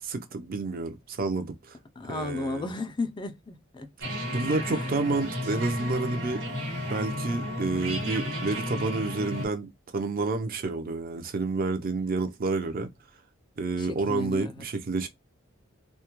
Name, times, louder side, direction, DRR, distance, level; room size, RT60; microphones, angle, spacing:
voice 1, 0.0-1.8 2.1-2.7 4.3-6.4 6.9-12.9 13.6-15.1, right 3 dB, 45° right, 0.5 m, -29 dB
voice 2, 2.0-3.9 4.7-4.8 13.8-14.6, left 3 dB, 20° left, 0.3 m, -34 dB
sound 1, 4.0-9.5, equal, 75° right, 1.2 m, -33 dB
2.2 x 2.1 x 2.9 m
head